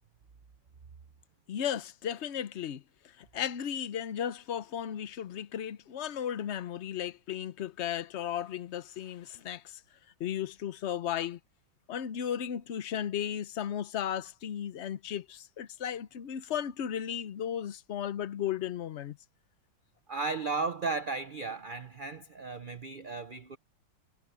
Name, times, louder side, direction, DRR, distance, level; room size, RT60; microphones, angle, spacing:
voice 1, 1.5-2.8 3.2-9.8 10.2-11.4 11.9-19.2, left 9 dB, 60° left, 0.7 m, -35 dB
voice 2, 20.1-23.6, right 4 dB, 50° right, 0.5 m, -35 dB
omnidirectional pair, 2.1 m